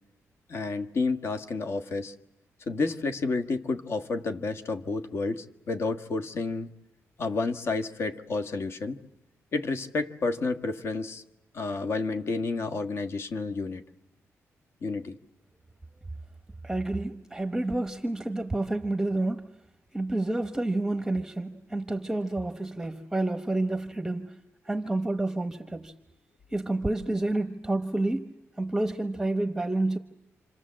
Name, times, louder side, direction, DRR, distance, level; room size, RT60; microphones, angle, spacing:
voice 1, 0.5-2.1 2.7-6.7 7.2-9.0 9.5-11.2 11.5-13.8 14.8-15.2, left 3 dB, 50° left, 1.5 m, -30 dB
voice 2, 16.6-19.5 19.9-24.4 24.6-25.9 26.5-30.0, right 2 dB, 5° right, 0.9 m, -29 dB
28.0 x 26.5 x 7.5 m
wide cardioid pair, 175°, 5 cm